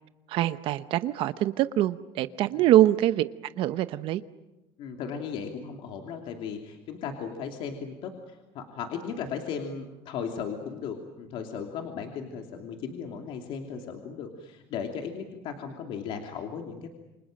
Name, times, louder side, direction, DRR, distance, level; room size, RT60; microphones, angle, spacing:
voice 1, 0.3-3.3 3.6-4.2, right 13 dB, 60° right, 13 dB, 0.8 m, -24 dB
voice 2, 4.8-16.9, left 6 dB, 60° left, 3 dB, 2.9 m, -36 dB
28.0 x 25.0 x 7.7 m, 1.0 s
cardioid pair, 160°, 10 cm